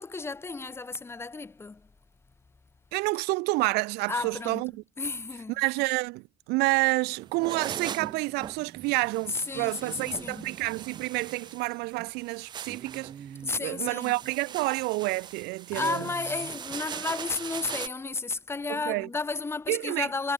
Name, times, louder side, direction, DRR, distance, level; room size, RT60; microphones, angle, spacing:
voice 1, 0.0-1.9 4.1-4.6 5.0-5.6 9.3-10.5 13.4-14.1 15.7-20.3, left 3 dB, 15° left, 2.6 m, -32 dB
voice 2, 2.9-4.8 5.5-13.1 13.6-16.1 18.7-19.1 19.7-20.1, right 24 dB, 75° right, 1.1 m, -29 dB
sound 1, 7.1-17.9, right 8 dB, 25° right, 0.5 m, -40 dB
cardioid pair, 145°, 17 cm